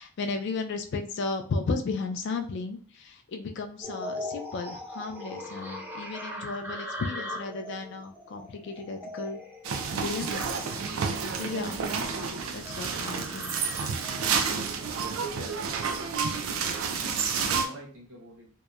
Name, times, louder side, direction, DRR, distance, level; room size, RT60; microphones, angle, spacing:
voice 1, 0.0-9.4 9.9-10.5 11.4-11.8 12.5-13.6, left 3 dB, 55° left, 5 dB, 0.3 m, -34 dB
sound 1, 3.8-15.6, left 1 dB, 10° right, 0.4 m, -41 dB
sound 2, 9.6-17.7, right 5 dB, 90° right, 0.4 m, -30 dB
voice 2, 15.2-18.5, equal, 65° right, -1 dB, 0.9 m, -47 dB
2.8 x 2.0 x 2.3 m, 0.43 s
head